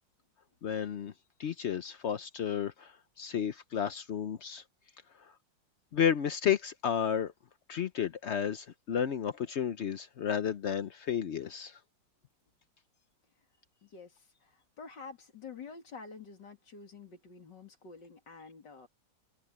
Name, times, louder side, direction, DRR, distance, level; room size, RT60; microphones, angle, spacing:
voice 1, 0.6-1.1 1.4-4.6 5.2-5.3 5.9-7.3 7.7-11.8, left 8 dB, 85° left, 0.6 m, -32 dB
voice 2, 13.8-18.9, left 5 dB, 60° left, 3.2 m, -49 dB
omnidirectional pair, 2.2 m